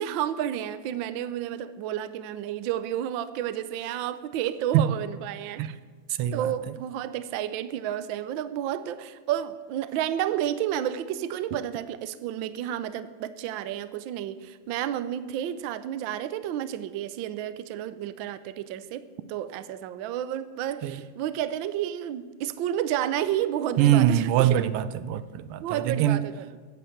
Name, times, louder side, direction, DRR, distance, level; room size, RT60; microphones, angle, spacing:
voice 1, 0.0-5.6 6.3-24.6 25.6-26.6, right 11 dB, 70° right, 1.3 m, -31 dB
voice 2, 23.8-26.2, right 11 dB, 85° right, 1.6 m, -23 dB
15.5 x 8.3 x 7.2 m
omnidirectional pair, 2.4 m